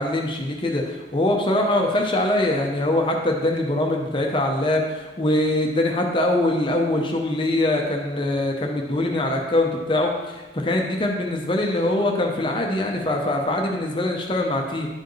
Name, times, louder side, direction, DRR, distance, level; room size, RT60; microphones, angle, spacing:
voice 1, 0.0-14.9, left 1 dB, 25° left, 1 dB, 0.6 m, -23 dB
11.0 x 4.7 x 3.1 m, 1.1 s
head